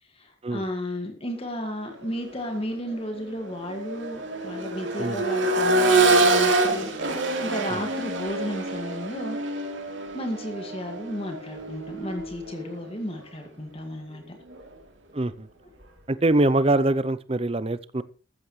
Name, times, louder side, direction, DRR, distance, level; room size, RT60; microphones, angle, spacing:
voice 1, 0.0-9.6 10.1-14.4, equal, 30° left, 2.0 m, -34 dB
Accelerating revving vroom, 2.3-2.5 2.9-12.8 14.5-14.6, right 2 dB, 65° right, 3.2 m, -26 dB
voice 2, 15.1-15.5 16.1-18.0, right 2 dB, 30° right, 0.6 m, -23 dB
14.5 x 14.0 x 3.2 m
head